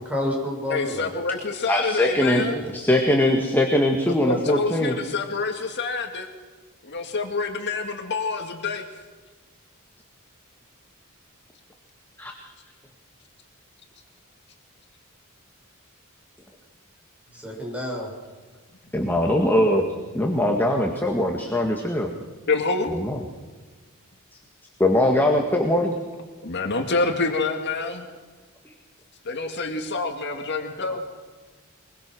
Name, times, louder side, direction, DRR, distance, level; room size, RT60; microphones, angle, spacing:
voice 1, 0.0-1.2 2.5-2.6 17.3-18.1, left 1 dB, 5° right, -1 dB, 6.7 m, -29 dB
voice 2, 0.7-2.6 4.2-6.3 6.8-8.8 19.1-19.2 22.5-22.9 26.4-28.1 29.3-31.0, left 3 dB, 55° left, 4 dB, 2.1 m, -27 dB
voice 3, 1.7-4.9 12.2-12.3 18.9-22.1 22.9-23.2 24.8-25.9, left 1 dB, 10° left, 2 dB, 1.9 m, -21 dB
23.5 x 22.5 x 6.3 m, 1.4 s
head